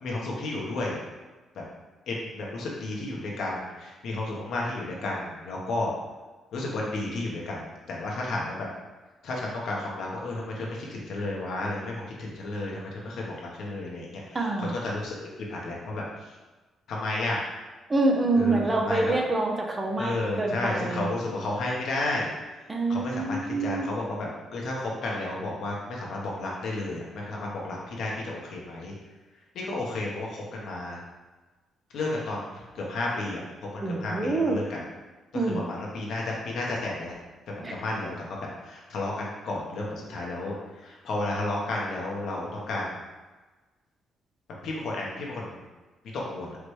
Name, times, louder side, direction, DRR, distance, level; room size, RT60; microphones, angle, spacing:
voice 1, 0.0-1.0 1.5-1.6 2.1-5.9 6.5-8.7 9.2-15.2 15.5-16.3 16.9-17.4 18.3-19.1 20.0-22.3 22.9-28.9 29.5-31.0 31.9-33.4 33.7-34.8 35.3-37.1 37.5-43.0 44.6-45.7 46.1-46.6, left 2 dB, 70° left, -3 dB, 1.1 m, -32 dB
voice 2, 14.3-14.8 17.9-21.1 22.7-23.9 33.8-34.6 35.3-35.6 37.6-37.7, right 2 dB, 25° right, 1 dB, 0.7 m, -26 dB
4.8 x 3.3 x 3.2 m, 1.2 s
cardioid pair, 90°, 0 cm